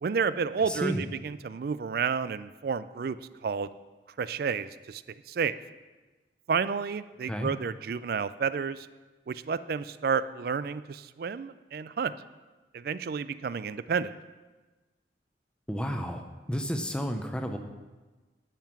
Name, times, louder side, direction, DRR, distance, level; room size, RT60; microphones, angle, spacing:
voice 1, 0.0-3.2 3.4-3.7 4.2-5.0 5.3-5.6 6.5-8.9 9.3-12.1 12.7-14.2, right 6 dB, 50° right, 15 dB, 0.3 m, -30 dB
voice 2, 0.6-1.0 7.3-7.5 15.7-17.6, equal, 5° left, 6 dB, 0.6 m, -31 dB
12.0 x 5.6 x 5.9 m, 1.2 s
head